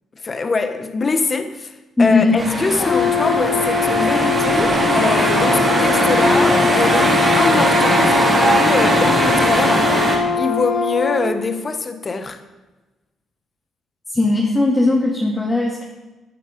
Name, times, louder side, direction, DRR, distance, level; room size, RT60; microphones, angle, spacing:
voice 1, 0.2-1.7 2.0-9.9 10.4-12.4, left 4 dB, 35° left, 7 dB, 1.3 m, -23 dB
voice 2, 2.0-2.4 14.1-15.8, left 3 dB, 15° left, -3 dB, 2.4 m, -17 dB
sound 1, 2.4-10.2, right 2 dB, 25° right, 4.7 m, -19 dB
Brass instrument, 2.8-11.2, left 6 dB, 60° left, 2.1 m, -21 dB
14.0 x 8.8 x 5.3 m, 1.1 s
cardioid pair, 90°, 0 cm